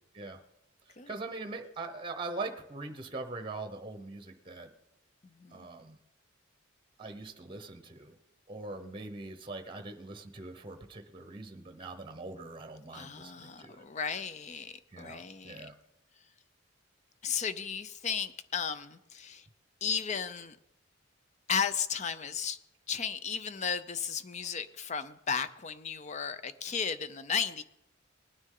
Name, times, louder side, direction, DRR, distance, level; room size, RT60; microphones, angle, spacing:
voice 1, 0.9-4.7 5.5-6.0 7.0-8.2 8.5-13.8 14.9-15.7, right 3 dB, 25° right, 8 dB, 0.8 m, -42 dB
voice 2, 12.9-15.7 17.2-19.4 19.8-20.6 21.5-22.6 22.9-27.6, left 6 dB, 35° left, 13 dB, 0.5 m, -34 dB
19.5 x 9.5 x 3.8 m, 0.87 s
head